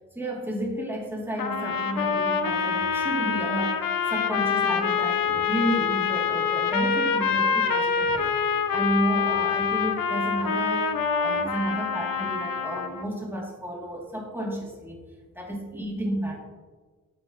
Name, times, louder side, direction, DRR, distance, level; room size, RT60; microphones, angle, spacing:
voice 1, 0.1-3.8 4.1-8.3 8.7-10.9 11.2-15.0 15.3-16.4, right 1 dB, 5° right, -2 dB, 2.3 m, -31 dB
sound 1, 1.4-13.1, left 6 dB, 70° left, 0.7 m, -26 dB
8.5 x 7.2 x 2.8 m, 1.4 s
cardioid pair, 40°, 35 cm